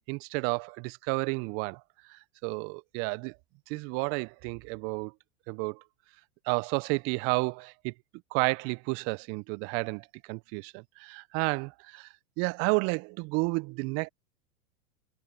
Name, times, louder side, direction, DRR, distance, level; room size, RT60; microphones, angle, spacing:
voice 1, 0.1-1.8 2.1-3.3 3.7-5.1 5.5-5.8 6.5-7.9 8.3-12.1 12.4-14.1, right 31 dB, 30° right, 0.5 m, -31 dB
hypercardioid pair, 100°, 44 cm